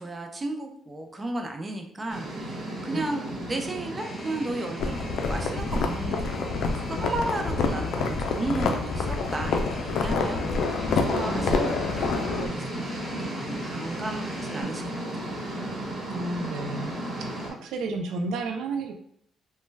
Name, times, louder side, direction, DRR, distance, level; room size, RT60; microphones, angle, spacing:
voice 1, 0.0-11.5 12.0-15.3, right 2 dB, 25° right, 3 dB, 0.5 m, -34 dB
sound 1, 2.1-17.5, right 1 dB, 50° right, 1.1 m, -36 dB
sound 2, 4.0-14.6, left 1 dB, 30° left, 1.4 m, -45 dB
sound 3, 4.8-12.5, left 4 dB, 75° left, 0.4 m, -27 dB
voice 2, 11.3-11.6 13.1-13.3 16.1-16.9 17.2-18.9, right 3 dB, 85° right, 5 dB, 0.3 m, -32 dB
3.0 x 2.2 x 3.2 m, 0.67 s
cardioid pair, 90°, 0 cm